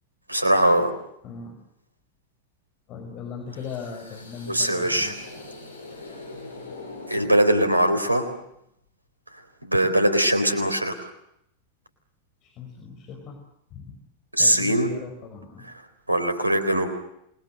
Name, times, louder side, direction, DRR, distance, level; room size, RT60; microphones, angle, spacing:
voice 1, 0.3-0.9 4.5-5.1 7.1-8.3 9.6-10.9 14.3-14.9 16.1-16.9, right 1 dB, 85° right, 10 dB, 3.9 m, -21 dB
voice 2, 1.2-1.6 2.9-5.2 12.4-13.4 13.7-14.0 14.4-15.6, left 5 dB, 35° left, 3 dB, 5.6 m, -38 dB
sound 1, 3.5-8.6, left 2 dB, 70° left, 6.6 m, -42 dB
28.5 x 22.0 x 7.8 m, 0.77 s
figure-of-eight pair, 90°, 0 cm